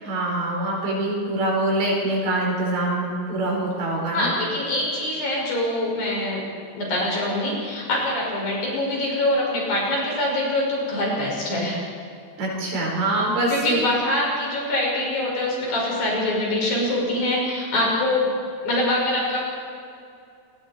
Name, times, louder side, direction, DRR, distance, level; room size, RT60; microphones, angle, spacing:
voice 1, 0.0-4.3 12.4-13.8, right 2 dB, 90° right, -3 dB, 7.3 m, -24 dB
voice 2, 4.1-6.4 6.7-11.8 13.5-18.4 18.6-19.4, left 1 dB, 55° left, -3 dB, 7.8 m, -24 dB
28.5 x 21.0 x 4.5 m, 2.4 s
omnidirectional pair, 4.9 m